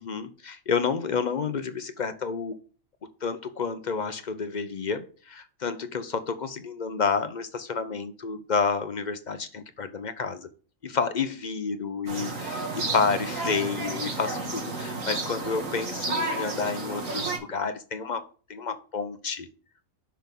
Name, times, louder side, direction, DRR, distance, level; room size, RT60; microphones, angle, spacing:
voice 1, 0.0-2.5 3.2-10.5 10.8-19.5, left 5 dB, 50° left, 0.6 m, -30 dB
sound 1, 12.1-17.4, right 2 dB, 90° right, 2.1 m, -32 dB
6.0 x 5.8 x 5.2 m
omnidirectional pair, 1.4 m